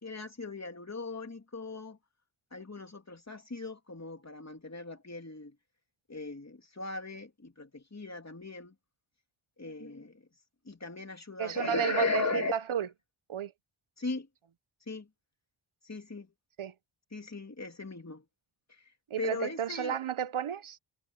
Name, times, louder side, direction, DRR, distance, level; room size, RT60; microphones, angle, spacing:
voice 1, 0.0-2.0 2.5-5.6 6.1-8.7 9.6-10.3 10.6-12.5 14.0-14.3 14.9-15.1 15.8-16.3 17.1-18.2 18.7-18.9 19.2-20.0, left 3 dB, 35° left, 3.0 m, -37 dB
voice 2, 11.4-12.9 13.3-13.5 16.6-16.7 19.1-20.8, right 9 dB, 75° right, 0.9 m, -32 dB
wide cardioid pair, 70°, 49 cm